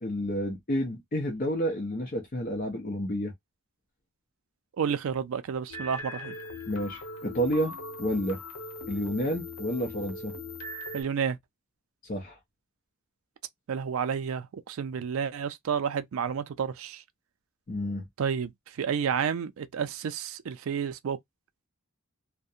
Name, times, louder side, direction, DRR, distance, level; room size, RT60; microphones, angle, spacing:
voice 1, 0.0-3.3 6.7-8.4 8.9-10.4 12.1-12.4 17.7-18.0, equal, 40° left, 0.6 m, -30 dB
voice 2, 4.8-6.3 10.9-11.4 13.7-17.0 18.2-18.5 18.8-21.2, right 7 dB, 70° right, 0.4 m, -30 dB
sound 1, 5.7-11.0, left 2 dB, 85° left, 0.8 m, -40 dB
2.4 x 2.1 x 2.6 m
head